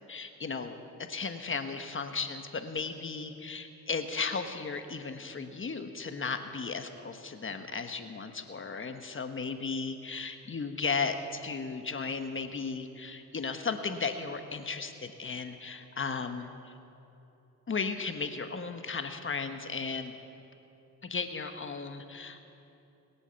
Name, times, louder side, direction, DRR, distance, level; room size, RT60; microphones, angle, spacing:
voice 1, 0.1-16.7 17.7-20.1 21.0-22.5, left 4 dB, 35° left, 7 dB, 1.2 m, -35 dB
21.5 x 8.4 x 7.0 m, 2.9 s
cardioid pair, 70°, 35 cm